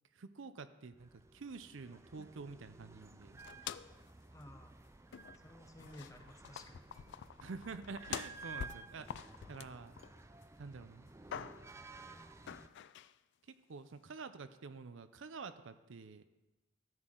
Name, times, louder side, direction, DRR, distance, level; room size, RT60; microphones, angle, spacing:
voice 1, 0.1-3.4 7.4-9.1 9.5-9.9 10.6-11.1 11.3-11.5 13.7-16.2, right 4 dB, 70° right, 11 dB, 0.6 m, -48 dB
sound 1, 1.0-12.7, right 4 dB, 15° right, 0.4 m, -54 dB
sound 2, 3.4-4.1 4.4-4.5 5.1-5.5 5.8-10.4 10.8-11.8 12.5-13.1, left 8 dB, 60° left, 0.3 m, -47 dB
voice 2, 4.3-4.8 5.3-7.0, left 1 dB, 15° left, 5 dB, 0.8 m, -55 dB
14.0 x 8.0 x 3.8 m, 1.1 s
head